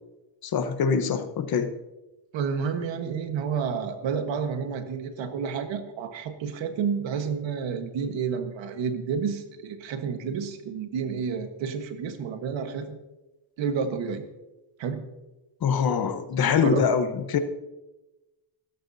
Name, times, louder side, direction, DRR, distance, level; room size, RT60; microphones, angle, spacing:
voice 1, 0.4-1.7 15.6-17.4, left 6 dB, 50° left, 9 dB, 1.1 m, -24 dB
voice 2, 2.3-13.0 13.6-14.2 14.8-15.0 16.6-16.9, right 6 dB, 75° right, 7 dB, 1.5 m, -30 dB
16.0 x 14.0 x 2.8 m, 1.0 s
cardioid pair, 130°, 46 cm